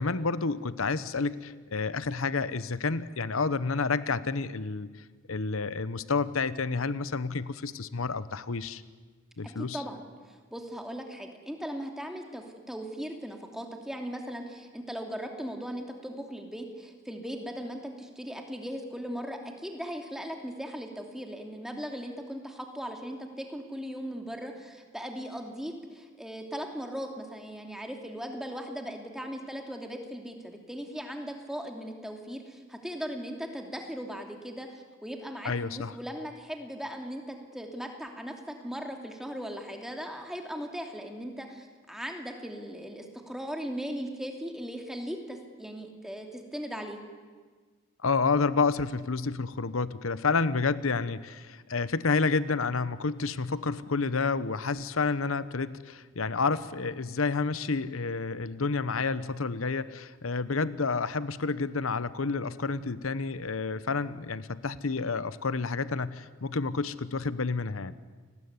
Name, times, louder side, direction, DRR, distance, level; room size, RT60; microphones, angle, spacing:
voice 1, 0.0-4.9 5.3-8.8 9.4-9.8 35.4-35.9 48.0-68.0, left 4 dB, 90° left, 15 dB, 0.9 m, -29 dB
voice 2, 9.6-47.0, equal, ahead, 3 dB, 2.8 m, -38 dB
29.0 x 20.0 x 9.7 m, 1.5 s
head